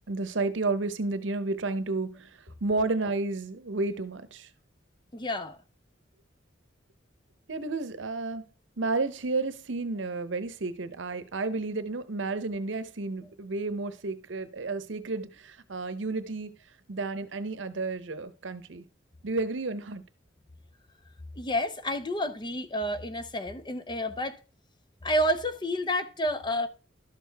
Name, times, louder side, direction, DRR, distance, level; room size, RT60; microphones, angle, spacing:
voice 1, 0.1-4.5 7.5-8.4 8.8-16.5 16.9-18.8 19.2-20.0, right 3 dB, 75° right, 0.8 m, -31 dB
voice 2, 5.1-5.6 21.4-24.4 25.0-26.7, equal, 25° left, 0.6 m, -29 dB
12.0 x 6.4 x 3.4 m
head